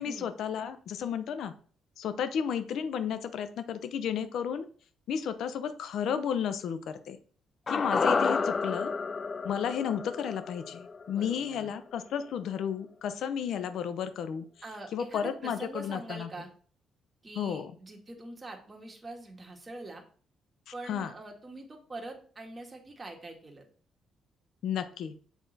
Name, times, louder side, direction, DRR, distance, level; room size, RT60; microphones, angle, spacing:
voice 1, 0.0-1.5 2.0-4.6 5.1-7.2 7.7-8.9 9.4-14.4 14.9-16.3 17.4-17.7 20.9-21.1 24.6-25.2, left 8 dB, 75° left, 11 dB, 0.7 m, -33 dB
sound 1, 7.7-12.0 12.2-12.3, left 4 dB, 40° left, 0.3 m, -31 dB
voice 2, 11.0-11.7 14.6-16.5 17.2-20.0 20.7-23.6, right 2 dB, 25° right, 2 dB, 1.6 m, -44 dB
7.2 x 3.8 x 4.0 m, 0.43 s
cardioid pair, 90°, 0 cm